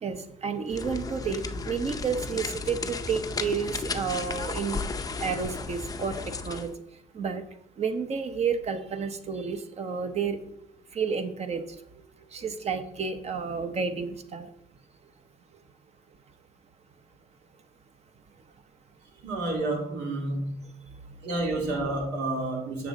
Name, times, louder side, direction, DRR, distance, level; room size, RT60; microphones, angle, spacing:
voice 1, 0.0-4.8 5.2-6.7 7.1-7.4 7.8-10.4 10.9-11.6 12.3-14.4, right 6 dB, 40° right, 9 dB, 0.9 m, -31 dB
sound 1, 0.7-6.7, left 4 dB, 20° left, 0.6 m, -34 dB
voice 2, 19.2-20.8 21.2-22.9, right 2 dB, 85° right, 0 dB, 2.4 m, -30 dB
7.2 x 6.9 x 3.9 m, 0.73 s
cardioid pair, 110°, 17 cm